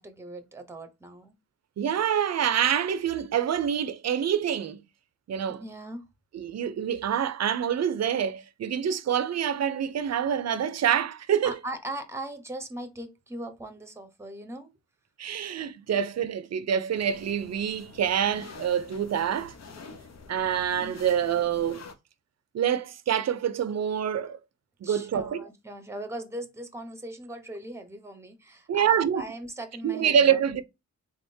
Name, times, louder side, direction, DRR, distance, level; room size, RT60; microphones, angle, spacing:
voice 1, 0.0-1.4 5.5-6.0 11.4-14.7 15.9-16.0 24.8-30.6, right 1 dB, 10° right, 0.8 m, -39 dB
voice 2, 1.8-4.8 5.3-5.6 6.3-11.6 15.2-19.5 20.3-21.8 22.5-24.4 24.8-25.5 28.7-29.2 29.8-30.6, right 8 dB, 60° right, 0.5 m, -26 dB
sound 1, 16.9-21.9, left 4 dB, 60° left, 0.7 m, -47 dB
3.7 x 3.5 x 2.6 m
wide cardioid pair, 105°, 30 cm